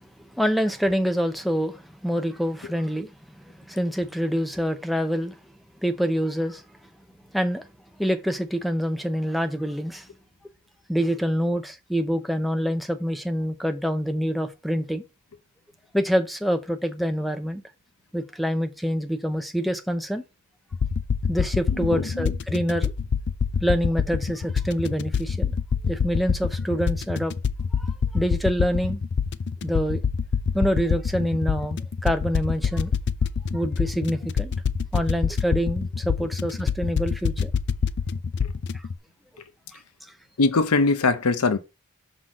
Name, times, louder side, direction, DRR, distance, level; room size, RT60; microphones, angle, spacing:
voice 1, 0.0-3.1 3.4-5.3 5.8-6.6 7.3-7.6 8.0-10.1 10.9-15.0 15.9-17.6 18.1-20.2 21.3-22.9 23.6-25.5 25.9-27.3 27.8-29.0 29.6-30.0 30.5-32.9 33.5-34.5 34.9-37.5 39.7-39.8, equal, ahead, 0.6 m, -26 dB
sound 1, 20.7-38.9, left 6 dB, 50° left, 0.4 m, -26 dB
voice 2, 21.7-22.3 40.4-41.6, left 3 dB, 85° left, 0.8 m, -22 dB
6.1 x 3.9 x 6.2 m
head